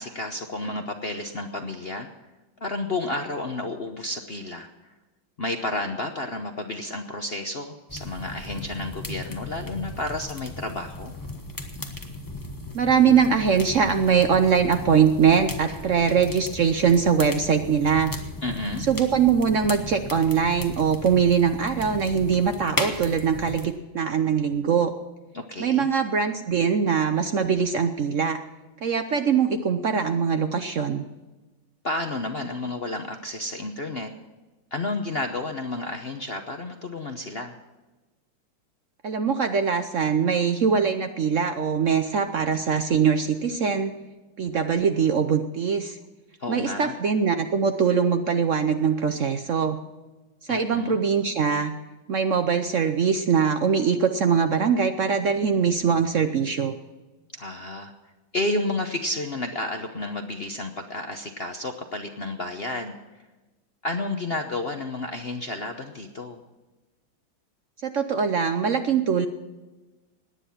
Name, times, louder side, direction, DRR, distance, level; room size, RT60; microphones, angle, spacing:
voice 1, 0.0-2.1 2.6-4.9 5.4-11.1 18.4-18.9 25.3-25.9 31.8-34.1 34.7-37.5 46.4-47.0 50.5-51.0 57.3-57.9 58.3-63.0 63.8-66.4, left 2 dB, 50° left, 5 dB, 0.7 m, -31 dB
sound 1, 7.9-23.7, left 2 dB, 15° left, 0.8 m, -36 dB
voice 2, 12.7-18.1 18.9-24.9 25.6-28.4 28.8-31.0 39.0-43.9 44.4-46.0 46.5-49.8 50.5-51.7 52.1-56.8 67.8-69.3, right 6 dB, 70° right, 7 dB, 0.7 m, -22 dB
18.0 x 10.0 x 5.7 m, 1.1 s
omnidirectional pair, 2.3 m